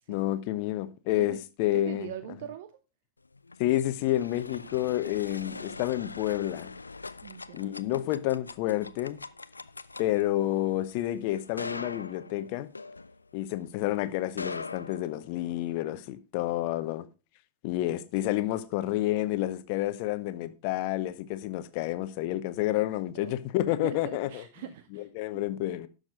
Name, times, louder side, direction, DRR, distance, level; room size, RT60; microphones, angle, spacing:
voice 1, 0.1-2.1 3.6-6.7 7.5-9.2 10.0-12.7 13.3-17.1 17.6-24.4 24.9-25.9, left 14 dB, 45° left, 0.8 m, -29 dB
voice 2, 1.7-2.7 7.2-7.7 23.1-23.3 23.7-25.1, right 11 dB, 55° right, 0.6 m, -42 dB
sound 1, 3.3-13.6 14.2-15.7, left 3 dB, 80° left, 0.4 m, -42 dB
11.5 x 6.5 x 3.7 m
figure-of-eight pair, 90°, 0 cm